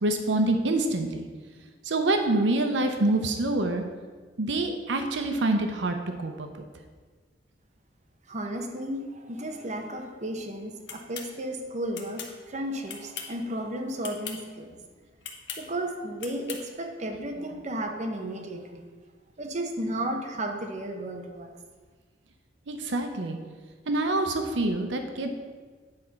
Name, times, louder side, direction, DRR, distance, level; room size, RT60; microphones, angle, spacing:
voice 1, 0.0-1.3 1.8-3.8 4.4-6.7 22.7-23.4 23.9-25.3, right 2 dB, 85° right, 5 dB, 0.7 m, -26 dB
voice 2, 8.3-14.8 15.6-18.9 19.4-21.5, right 1 dB, 40° right, 3 dB, 0.9 m, -34 dB
sound 1, 10.9-11.3 12.0-12.3 12.9-13.4 14.0-14.4 15.2-15.6 16.2-16.6, left 6 dB, 80° left, 1.1 m, -38 dB
8.9 x 4.2 x 5.8 m, 1.4 s
head